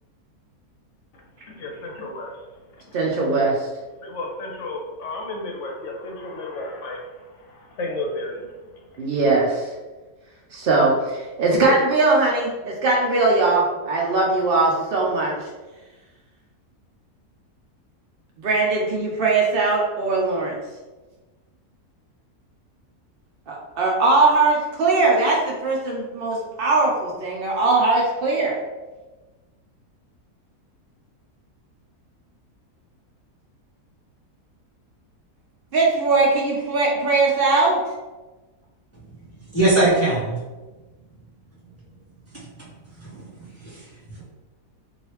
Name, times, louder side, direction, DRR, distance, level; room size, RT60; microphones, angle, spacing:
voice 1, 1.1-3.0 4.0-9.1, left 2 dB, 60° left, 0 dB, 0.9 m, -34 dB
voice 2, 2.9-3.7 9.0-9.7 10.5-15.3 18.4-20.6 23.5-28.6 35.7-37.8, right 3 dB, 80° right, -2 dB, 0.5 m, -20 dB
voice 3, 39.5-40.4 42.3-42.5 43.0-43.3 43.6-43.9 44.2-44.3, right 2 dB, 20° left, -8 dB, 0.4 m, -21 dB
3.2 x 2.7 x 3.0 m, 1.2 s
omnidirectional pair, 1.7 m